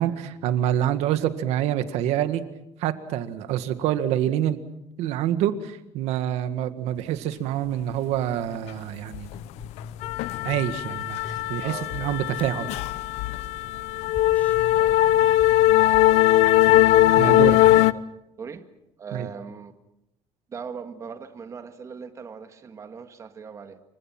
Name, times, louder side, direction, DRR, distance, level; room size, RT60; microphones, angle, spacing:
voice 1, 0.0-2.4 2.8-4.6 5.0-9.3 10.4-12.7 17.2-17.7 19.1-19.3, right 11 dB, 80° right, 10 dB, 1.8 m, -26 dB
sound 1, 7.4-11.8 12.6-12.7, left 5 dB, 40° left, 3.2 m, -45 dB
sound 2, 9.1-9.4 9.6-17.9, left 15 dB, 85° left, 0.8 m, -20 dB
voice 2, 11.6-12.2 14.8-15.0 18.4-18.7 19.0-19.7 20.5-23.8, right 6 dB, 30° right, 8 dB, 1.8 m, -39 dB
sound 3, 11.7-17.0, left 1 dB, 10° left, 5.5 m, -47 dB
28.0 x 24.5 x 6.0 m, 0.87 s
cardioid pair, 165°, 11 cm